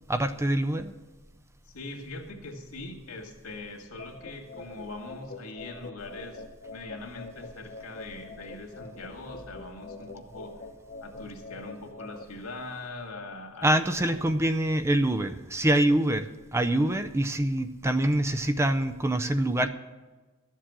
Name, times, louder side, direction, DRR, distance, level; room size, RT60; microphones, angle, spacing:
voice 1, 0.1-0.9 13.6-19.7, right 1 dB, 15° right, 10 dB, 0.5 m, -25 dB
voice 2, 1.6-10.5 11.0-13.9, left 2 dB, 75° left, 2 dB, 2.2 m, -41 dB
sound 1, 4.0-12.2, left 3 dB, 45° left, 0.9 m, -45 dB
13.0 x 7.4 x 7.4 m, 1.3 s
head